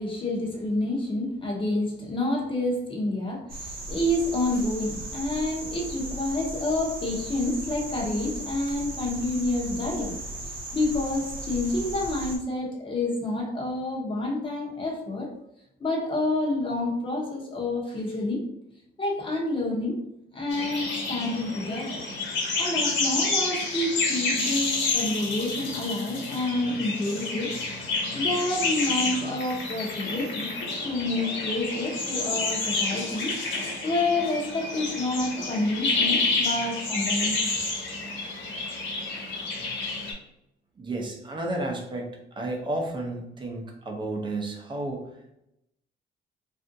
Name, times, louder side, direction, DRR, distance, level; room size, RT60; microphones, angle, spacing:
voice 1, 0.0-10.2 10.5-15.3 15.8-18.5 19.0-20.0 20.3-22.0 22.6-27.5 28.1-30.5 30.8-37.6, left 2 dB, 30° left, -1 dB, 0.8 m, -28 dB
sound 1, 3.5-12.4, right 2 dB, 50° right, 0.8 m, -37 dB
sound 2, 20.5-40.1, left 3 dB, 90° left, 1.0 m, -29 dB
voice 2, 40.8-45.0, right 2 dB, 25° right, 1 dB, 0.6 m, -32 dB
3.4 x 2.5 x 2.6 m, 0.80 s
cardioid pair, 145°, 19 cm